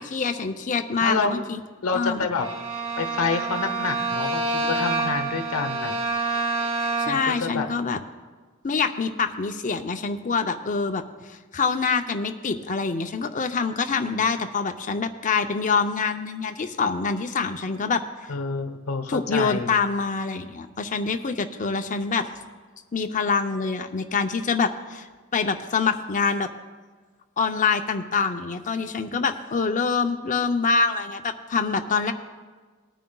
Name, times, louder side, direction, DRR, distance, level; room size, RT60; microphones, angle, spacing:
voice 1, 0.0-1.6 1.9-2.3 7.0-8.0 8.6-11.0 11.3-18.0 19.1-22.3 22.9-25.1 25.3-26.5 27.4-32.1, left 5 dB, 35° left, 7 dB, 0.6 m, -25 dB
voice 2, 1.0-1.4 1.8-2.5 3.0-6.0 7.0-7.7 18.3-19.8, left 4 dB, 75° left, 7 dB, 1.0 m, -28 dB
Bowed string instrument, 2.4-7.4, right 3 dB, 65° right, 1.5 m, -27 dB
19.5 x 9.2 x 2.3 m, 1.4 s
head